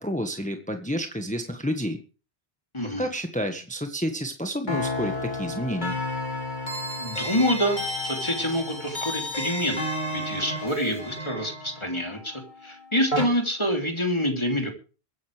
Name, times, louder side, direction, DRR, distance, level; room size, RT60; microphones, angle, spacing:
voice 1, 0.0-2.0 2.8-6.0, equal, 5° left, 5 dB, 1.6 m, -30 dB
voice 2, 2.7-3.1 7.0-14.7, equal, 25° left, 3 dB, 3.3 m, -27 dB
sound 1, 4.7-13.3, left 1 dB, 45° left, 2.9 m, -32 dB
23.0 x 10.5 x 3.4 m, 0.35 s
omnidirectional pair, 1.1 m